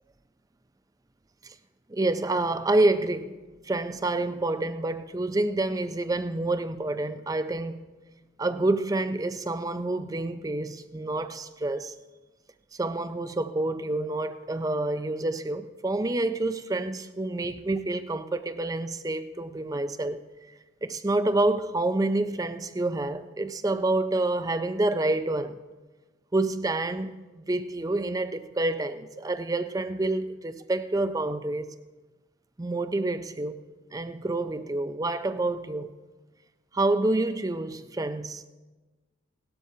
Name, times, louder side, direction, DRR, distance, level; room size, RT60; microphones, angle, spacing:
voice 1, 1.9-3.4 3.6-7.8 8.4-11.9 12.8-20.2 20.8-25.6 26.3-31.7 32.6-33.6 33.9-35.9 36.7-38.4, right 2 dB, 20° right, 0.4 m, -28 dB
18.0 x 12.5 x 2.7 m
head